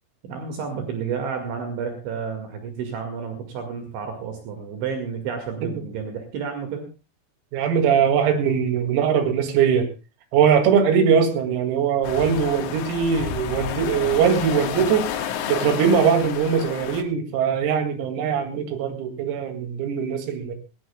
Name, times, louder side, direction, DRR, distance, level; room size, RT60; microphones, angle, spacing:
voice 1, 0.2-6.9, right 6 dB, 65° right, 4 dB, 4.1 m, -31 dB
voice 2, 7.5-9.9 10.3-15.1 15.5-20.6, right 7 dB, 90° right, 7 dB, 4.9 m, -21 dB
sound 1, 12.0-17.0, left 9 dB, 85° left, 4.4 m, -30 dB
20.0 x 18.5 x 2.3 m, 0.31 s
omnidirectional pair, 6.0 m